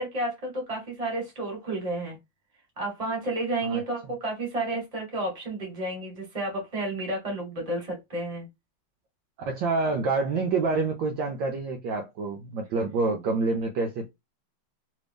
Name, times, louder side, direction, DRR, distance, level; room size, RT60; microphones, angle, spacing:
voice 1, 0.0-2.2 2.8-8.5, right 2 dB, 20° right, 1.2 m, -31 dB
voice 2, 9.5-14.1, right 3 dB, 75° right, 1.1 m, -27 dB
3.3 x 2.6 x 3.4 m
omnidirectional pair, 2.3 m